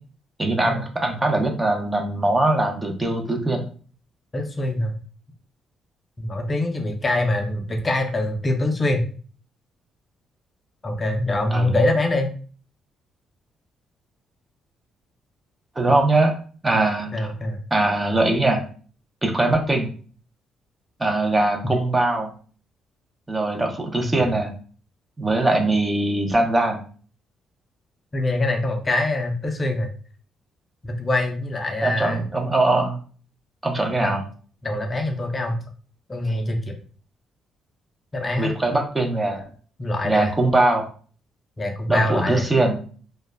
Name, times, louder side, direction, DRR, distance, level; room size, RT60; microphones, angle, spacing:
voice 1, 0.4-3.6 11.5-11.8 15.8-16.3 16.6-17.3 17.7-18.6 19.2-19.9 21.0-22.3 23.3-24.5 25.2-26.8 31.8-33.0 33.6-34.2 38.4-39.4 40.0-40.9 41.9-42.8, right 2 dB, 20° right, 2 dB, 0.6 m, -21 dB
voice 2, 4.3-4.9 6.2-9.0 10.8-12.3 17.1-17.6 24.0-24.3 28.1-29.9 30.8-32.3 34.0-34.1 34.6-35.6 36.1-36.7 38.1-38.5 39.8-40.4 41.6-42.5, left 2 dB, 30° left, 3 dB, 0.5 m, -24 dB
2.2 x 2.0 x 3.3 m, 0.42 s
cardioid pair, 90°, 0 cm